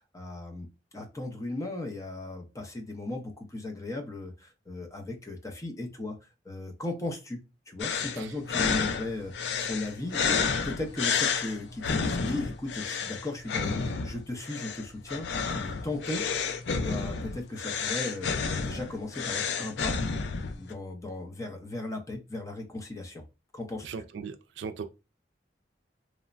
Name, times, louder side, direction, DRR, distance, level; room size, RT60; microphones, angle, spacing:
voice 1, 0.1-0.7 0.9-6.2 6.4-7.4 7.7-10.4 10.6-16.2 16.7-18.4 18.6-20.0 20.6-23.2 23.5-23.9, left 2 dB, 20° left, 0.6 m, -36 dB
sound 1, 7.8-20.7, left 5 dB, 70° left, 0.4 m, -31 dB
voice 2, 23.8-24.8, right 5 dB, 80° right, 0.4 m, -38 dB
3.1 x 2.1 x 2.4 m
head